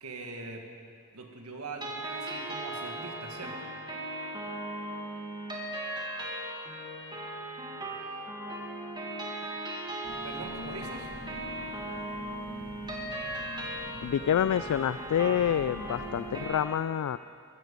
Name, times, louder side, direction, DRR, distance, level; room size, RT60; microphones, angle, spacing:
voice 1, 0.0-0.6 1.1-3.7 10.2-11.1, right 3 dB, 75° right, 2 dB, 1.8 m, -42 dB
sound 1, 1.8-16.6, right 1 dB, 20° right, 1.7 m, -38 dB
Engine, 10.0-16.5, left 1 dB, 45° left, 2.1 m, -46 dB
voice 2, 14.0-17.2, left 9 dB, 75° left, 14 dB, 0.3 m, -27 dB
15.0 x 14.5 x 5.4 m, 2.4 s
head